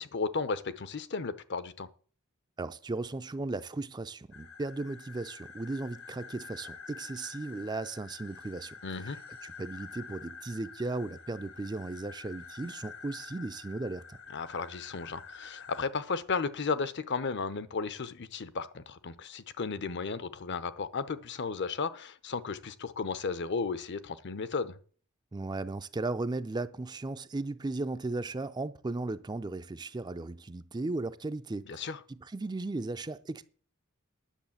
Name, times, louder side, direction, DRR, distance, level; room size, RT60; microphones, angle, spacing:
voice 1, 0.0-1.9 8.8-9.2 14.3-24.8 31.7-32.0, left 4 dB, 55° left, 0.8 m, -34 dB
voice 2, 2.6-14.2 25.3-33.5, right 2 dB, 20° right, 0.4 m, -36 dB
sound 1, 4.3-15.9, left 5 dB, 70° left, 1.5 m, -48 dB
10.0 x 7.2 x 7.2 m
head